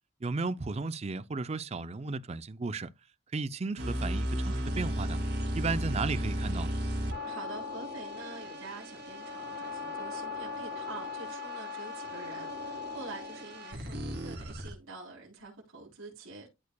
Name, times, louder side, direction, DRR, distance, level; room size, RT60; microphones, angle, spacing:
voice 1, 0.2-2.9 3.3-5.2 5.5-6.7, right 3 dB, 30° right, 0.4 m, -34 dB
sound 1, 3.8-14.7, left 1 dB, 50° right, 2.4 m, -35 dB
voice 2, 7.2-16.5, right 3 dB, 80° right, 3.5 m, -46 dB
13.0 x 4.6 x 2.2 m
head